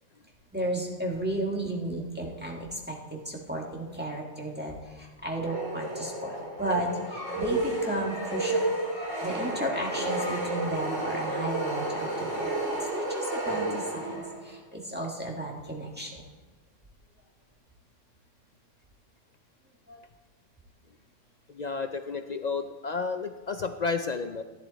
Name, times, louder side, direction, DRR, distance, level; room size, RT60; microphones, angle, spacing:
voice 1, 0.5-12.5 12.9-16.2 19.9-20.0, right 1 dB, 10° right, -2 dB, 1.5 m, -34 dB
sound 1, 5.4-14.5, right 1 dB, 80° right, 3.5 m, -31 dB
voice 2, 21.5-24.4, left 4 dB, 55° left, 8 dB, 0.5 m, -31 dB
14.5 x 10.5 x 4.1 m, 1.3 s
omnidirectional pair, 1.2 m